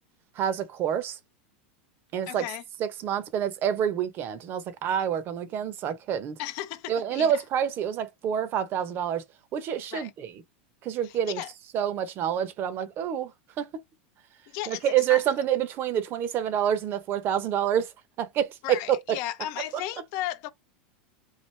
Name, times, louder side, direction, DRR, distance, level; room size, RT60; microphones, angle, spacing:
voice 1, 0.4-1.2 2.1-2.4 2.8-6.4 6.9-9.2 9.5-10.3 10.8-11.4 11.7-13.3 13.6-13.7 14.7-17.9 18.2-19.0, right 9 dB, 40° right, 0.7 m, -27 dB
voice 2, 2.3-2.6 6.4-7.4 9.9-10.1 11.0-11.5 14.5-15.2 18.6-20.5, left 14 dB, 55° left, 0.6 m, -35 dB
3.2 x 2.5 x 3.1 m
supercardioid pair, 120°, 6 cm